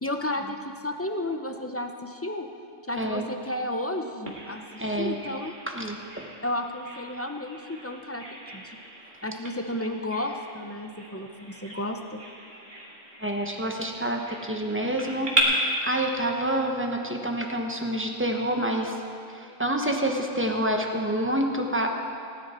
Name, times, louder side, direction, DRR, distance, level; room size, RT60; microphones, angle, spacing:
voice 1, 0.0-2.5 2.9-5.6 6.4-8.3 8.5-8.8 9.2-12.2, left 1 dB, 20° left, 5 dB, 0.4 m, -32 dB
voice 2, 2.9-3.3 4.8-5.1 5.7-6.3 13.2-19.0 19.3-21.9, right 1 dB, 10° right, 2 dB, 1.0 m, -28 dB
Bird vocalization bird call bird song, 4.3-15.4, right 1 dB, 40° right, 2.0 m, -37 dB
18.5 x 10.0 x 4.4 m, 2.5 s
omnidirectional pair, 1.3 m